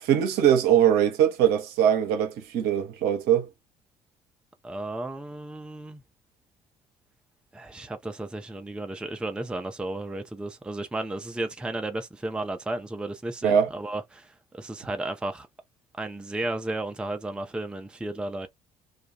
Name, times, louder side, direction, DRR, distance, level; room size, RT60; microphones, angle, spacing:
voice 1, 0.0-3.5 13.4-13.7, right 9 dB, 55° right, 0.7 m, -21 dB
voice 2, 4.6-6.0 7.5-15.5 16.0-18.5, right 2 dB, 5° right, 0.5 m, -33 dB
2.3 x 2.2 x 2.8 m
figure-of-eight pair, 50°, 19 cm